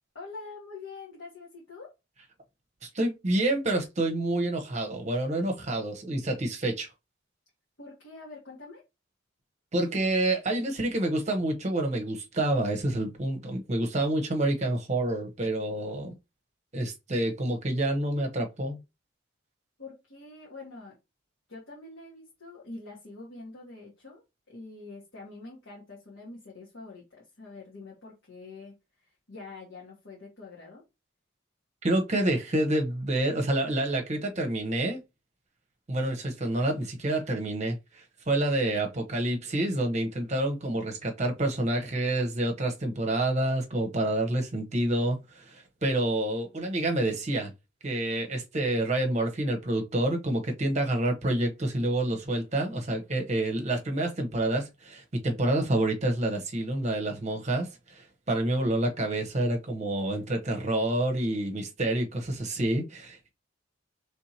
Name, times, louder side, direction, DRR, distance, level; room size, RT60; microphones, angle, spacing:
voice 1, 0.1-1.9 7.8-8.8 19.8-20.9 21.5-24.2 24.5-30.8, left 3 dB, 70° left, 1.6 m, -45 dB
voice 2, 2.8-6.9 9.7-16.1 16.7-18.8 31.8-35.0 35.9-47.5 47.8-63.3, right 1 dB, 35° right, 0.9 m, -28 dB
4.5 x 3.4 x 2.8 m
head